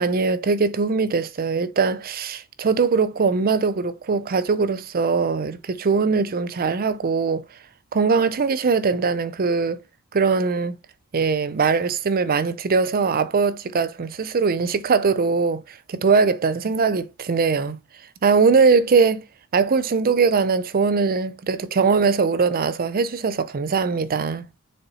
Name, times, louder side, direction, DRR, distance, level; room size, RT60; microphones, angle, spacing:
voice 1, 0.0-7.4 7.9-9.8 10.1-10.8 11.1-17.8 18.2-19.2 19.5-24.4, right 5 dB, 40° right, 0.5 m, -21 dB
6.7 x 4.3 x 4.1 m
head